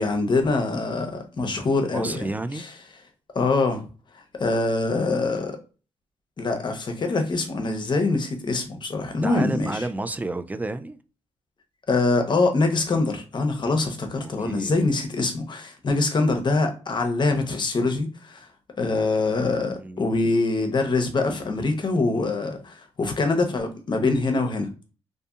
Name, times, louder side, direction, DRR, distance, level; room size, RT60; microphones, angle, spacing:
voice 1, 0.0-2.7 3.3-3.8 4.4-5.6 6.4-9.8 11.9-18.5 18.8-24.7, left 3 dB, 45° left, 0.7 m, -24 dB
voice 2, 1.9-2.6 9.2-11.0 14.4-14.9 19.7-20.0, right 2 dB, 15° right, 0.3 m, -31 dB
2.6 x 2.5 x 2.4 m
cardioid pair, 70°, 11 cm